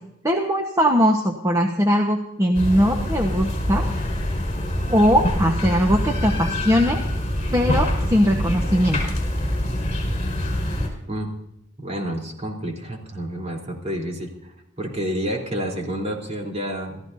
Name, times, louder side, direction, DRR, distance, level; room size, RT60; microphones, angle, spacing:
voice 1, 0.2-3.8 4.9-7.0 7.5-9.1, equal, 15° right, 2 dB, 1.2 m, -20 dB
sound 1, 2.5-10.9, left 1 dB, 35° left, 5.3 m, -25 dB
voice 2, 11.8-17.0, equal, 35° right, 0 dB, 3.7 m, -29 dB
28.5 x 14.5 x 2.7 m, 0.84 s
head